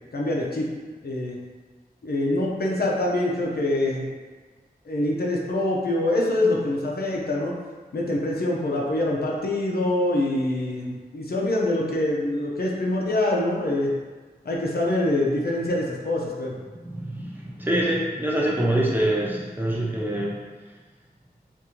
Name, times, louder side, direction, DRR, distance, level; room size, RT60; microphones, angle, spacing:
voice 1, 0.1-0.7 1.0-1.4 2.0-4.1 4.9-7.5 7.9-13.9 14.5-16.5, left 1 dB, 75° left, -2 dB, 0.6 m, -25 dB
voice 2, 16.7-20.3, right 1 dB, 10° right, -4 dB, 0.7 m, -25 dB
3.7 x 2.6 x 2.9 m, 1.4 s
wide cardioid pair, 50°, 16 cm